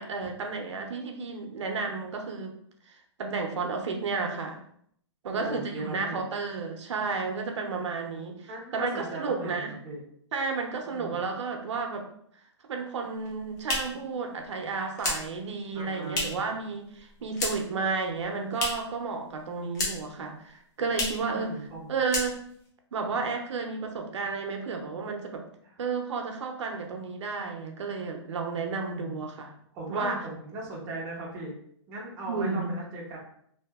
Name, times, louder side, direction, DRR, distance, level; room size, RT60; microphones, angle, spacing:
voice 1, 0.0-2.5 2.9-4.6 5.2-9.7 10.3-12.0 12.7-22.4 22.9-25.4 25.8-29.5 29.9-30.2 32.3-32.7, right 4 dB, 75° right, 3 dB, 0.6 m, -32 dB
voice 2, 5.2-6.2 8.5-10.0 10.8-11.2 15.7-16.4 21.3-21.9 25.6-25.7 28.9-29.2 29.7-31.5 31.9-33.2, right 1 dB, 15° right, -4 dB, 0.5 m, -38 dB
sound 1, 13.1-16.6 16.8-17.8 18.1-19.0 19.3-20.2 20.5-20.6 20.9-21.3 21.6-21.8 22.0-22.7, left 2 dB, 35° left, 0.8 m, -33 dB
2.7 x 2.6 x 2.3 m, 0.66 s
hypercardioid pair, 160°, 15 cm